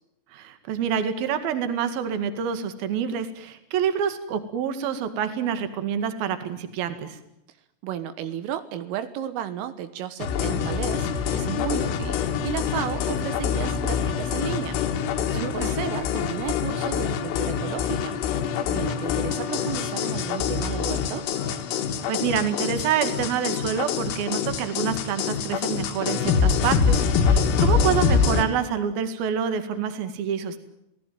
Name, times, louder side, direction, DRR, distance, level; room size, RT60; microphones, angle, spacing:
voice 1, 0.3-7.2 15.3-15.7 22.1-30.6, right 8 dB, 55° right, 9 dB, 3.4 m, -27 dB
voice 2, 7.8-18.2 18.7-21.3, right 11 dB, 80° right, 11 dB, 3.7 m, -33 dB
sound 1, 10.2-28.5, left 6 dB, 85° left, 4.4 m, -25 dB
28.0 x 18.5 x 9.3 m, 0.85 s
omnidirectional pair, 5.8 m